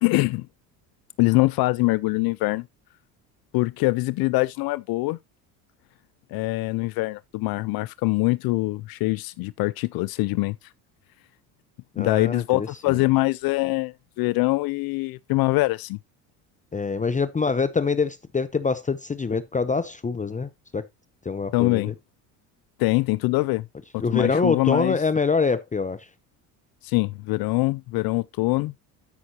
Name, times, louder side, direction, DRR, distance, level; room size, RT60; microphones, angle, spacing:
voice 1, 0.0-0.5 1.2-2.7 3.5-5.2 6.3-10.6 12.0-16.0 21.5-21.9 22.8-23.7 23.9-25.0 26.8-28.7, left 22 dB, 55° left, 0.5 m, -23 dB
voice 2, 11.9-13.0 16.7-20.9 21.2-21.9 24.0-26.1, left 4 dB, 15° left, 0.7 m, -25 dB
13.0 x 5.7 x 2.8 m
hypercardioid pair, 75°, 44 cm